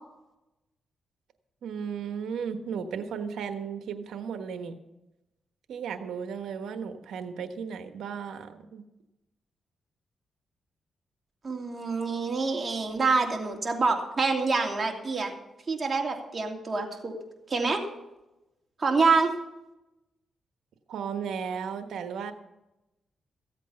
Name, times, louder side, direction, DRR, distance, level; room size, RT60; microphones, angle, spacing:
voice 1, 1.6-4.7 5.7-8.8 20.9-22.3, right 6 dB, 80° right, 7 dB, 1.3 m, -35 dB
voice 2, 11.4-15.3 15.7-17.2 17.5-17.8 18.8-19.3, right 4 dB, 35° right, 2 dB, 2.7 m, -26 dB
15.5 x 8.2 x 5.7 m, 0.95 s
cardioid pair, 70°, 0 cm